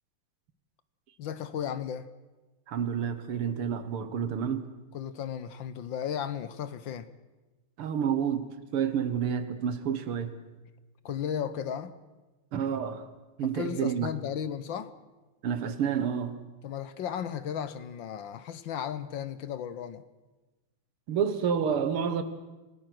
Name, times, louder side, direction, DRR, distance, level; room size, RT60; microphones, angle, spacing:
voice 1, 1.2-2.1 4.9-7.1 11.0-12.0 13.5-14.9 16.6-20.0, left 8 dB, 65° left, 1.6 m, -35 dB
voice 2, 2.7-4.7 7.8-10.3 12.5-13.1 13.4-14.1 15.4-16.4 21.1-22.2, right 7 dB, 85° right, 2.3 m, -29 dB
26.5 x 18.0 x 6.1 m
omnidirectional pair, 2.3 m